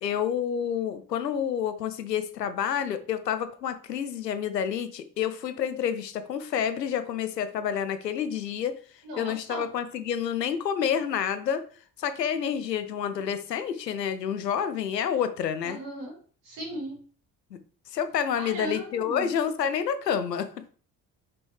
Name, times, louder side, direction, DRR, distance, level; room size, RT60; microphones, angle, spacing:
voice 1, 0.0-8.8 9.2-11.6 12.0-15.8 17.9-20.7, left 8 dB, 85° left, 12 dB, 0.6 m, -29 dB
voice 2, 9.0-9.6 15.6-16.1 16.4-17.0 18.3-19.3, right 1 dB, 70° right, -4 dB, 3.3 m, -37 dB
5.6 x 5.3 x 3.2 m, 0.42 s
figure-of-eight pair, 50°, 48 cm